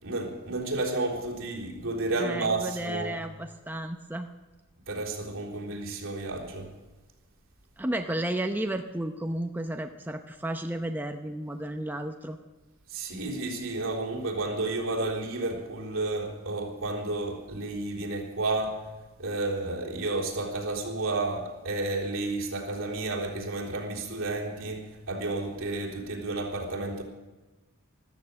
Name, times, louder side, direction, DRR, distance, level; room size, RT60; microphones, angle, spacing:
voice 1, 0.0-3.2 4.9-6.7 12.9-27.0, right 2 dB, 70° right, 3.7 m, -31 dB
voice 2, 2.2-4.3 7.8-12.4, right 1 dB, 10° right, 0.7 m, -33 dB
14.0 x 13.5 x 7.7 m
head